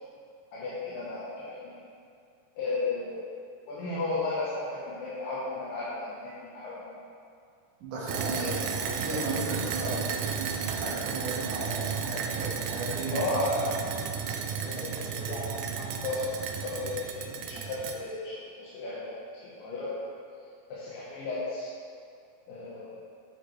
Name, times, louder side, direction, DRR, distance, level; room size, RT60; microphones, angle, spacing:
voice 1, 0.5-1.7 2.6-3.2 3.7-7.0 8.1-8.8 13.1-13.8 14.4-19.9 20.7-21.7 22.5-23.0, left 2 dB, 85° left, -9 dB, 2.8 m, -34 dB
voice 2, 7.8-8.6 9.0-13.2, right 2 dB, 70° right, -5 dB, 2.6 m, -35 dB
sound 1, 8.1-17.9, right 7 dB, 85° right, 1.6 m, -33 dB
sound 2, 11.5-16.8, right 7 dB, 40° right, 1.9 m, -44 dB
10.0 x 4.9 x 3.2 m, 2.3 s
omnidirectional pair, 3.9 m